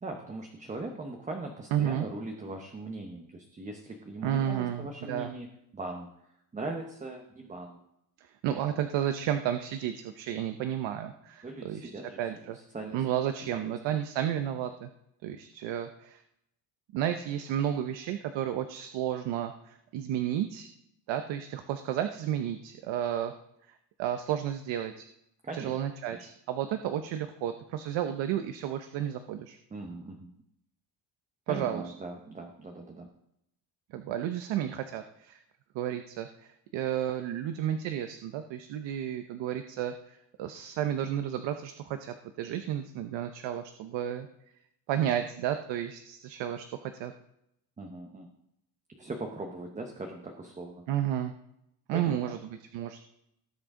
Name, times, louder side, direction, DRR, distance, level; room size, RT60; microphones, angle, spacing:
voice 1, 0.0-5.5 5.7-6.1 6.5-7.8 11.4-12.2 12.5-13.1 13.5-13.6 25.4-25.7 26.1-26.2 29.7-30.3 31.5-33.1 47.8-48.3 48.9-50.8 51.9-52.4, right 2 dB, 15° right, 3 dB, 0.9 m, -40 dB
voice 2, 1.7-2.1 4.2-5.3 8.4-11.9 12.2-12.6 12.9-14.9 15.2-16.2 16.9-20.7 21.1-23.3 24.0-25.1 25.5-29.6 31.5-31.8 33.9-35.4 35.7-44.3 44.9-47.1 50.9-51.3 51.9-53.0, right 10 dB, 70° right, 8 dB, 0.9 m, -32 dB
18.0 x 7.8 x 3.7 m, 0.79 s
cardioid pair, 155°, 46 cm